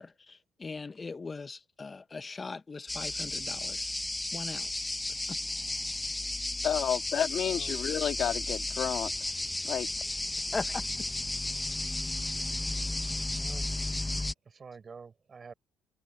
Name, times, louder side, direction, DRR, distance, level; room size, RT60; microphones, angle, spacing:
voice 1, 0.0-3.9 4.3-4.9 5.3-5.4 10.5-10.9, left 4 dB, 30° left, 0.9 m, -40 dB
sound 1, 2.9-14.3, left 2 dB, 15° left, 1.2 m, -33 dB
voice 2, 6.6-9.1 9.6-9.9, left 9 dB, 60° left, 2.2 m, -30 dB
voice 3, 7.5-7.8 8.0-8.3 13.4-13.7 14.4-15.5, right 5 dB, 40° right, 7.0 m, -48 dB
supercardioid pair, 70°, 0 cm